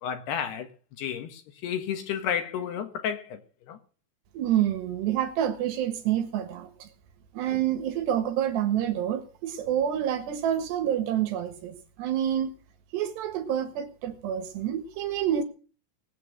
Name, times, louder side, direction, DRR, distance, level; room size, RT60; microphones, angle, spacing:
voice 1, 0.0-0.7 1.0-3.4 3.7-3.8, left 8 dB, 70° left, 3.0 m, -31 dB
voice 2, 4.3-6.9 7.3-12.5 12.9-15.4, right 10 dB, 70° right, 3.4 m, -28 dB
19.5 x 8.7 x 7.3 m
omnidirectional pair, 5.6 m